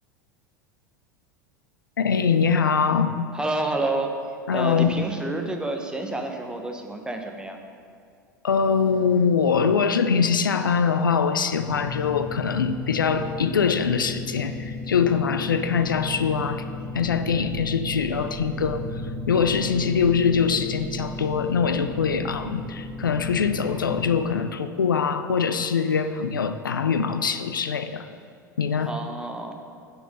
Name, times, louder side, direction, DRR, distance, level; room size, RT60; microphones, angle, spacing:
voice 1, 2.0-3.1 4.5-5.0 8.4-16.6 16.9-18.8 19.3-28.1 28.6-28.9, left 6 dB, 85° left, 10 dB, 0.4 m, -23 dB
voice 2, 3.3-4.1 4.5-7.6 28.9-29.5, right 2 dB, 10° right, 3 dB, 0.8 m, -29 dB
sound 1, 11.7-24.2, left 3 dB, 20° left, 1.7 m, -34 dB
6.0 x 5.4 x 6.3 m, 2.3 s
figure-of-eight pair, 85°, 11 cm